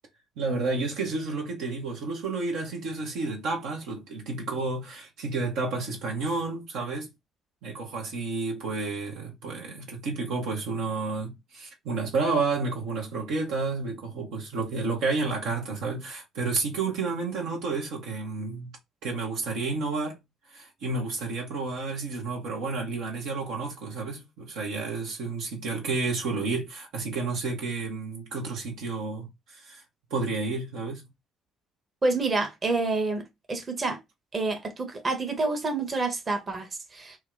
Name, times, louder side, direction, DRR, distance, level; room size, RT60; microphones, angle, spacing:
voice 1, 0.4-7.1 7.6-18.7 19.0-20.2 20.5-29.8 30.1-31.0, right 3 dB, 65° right, 0.9 m, -31 dB
voice 2, 32.0-34.0 34.3-37.2, right 3 dB, 35° right, 1.1 m, -28 dB
2.9 x 2.3 x 3.7 m
hypercardioid pair, 50°, 0 cm